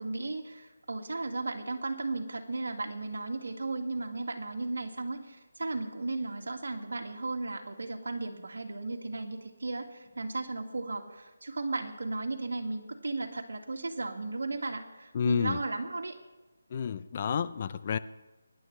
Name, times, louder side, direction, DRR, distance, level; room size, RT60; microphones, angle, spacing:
voice 1, 0.0-16.2, right 3 dB, 75° right, 3 dB, 2.0 m, -35 dB
voice 2, 15.1-15.6 16.7-18.0, left 7 dB, 35° left, 14 dB, 0.5 m, -30 dB
23.5 x 11.0 x 3.3 m, 1.1 s
figure-of-eight pair, 165°, 0 cm